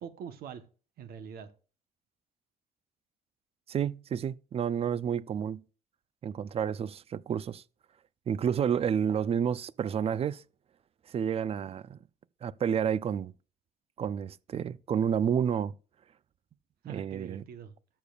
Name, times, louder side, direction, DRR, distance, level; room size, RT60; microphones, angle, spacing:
voice 1, 0.0-0.6 1.0-1.5 16.8-17.7, right 7 dB, 65° right, 1.0 m, -43 dB
voice 2, 3.7-5.6 6.2-7.6 8.3-10.4 11.1-12.0 12.4-13.3 14.0-15.7 16.9-17.4, right 8 dB, 35° right, 0.4 m, -30 dB
13.0 x 6.7 x 2.4 m
cardioid pair, 110°, 17 cm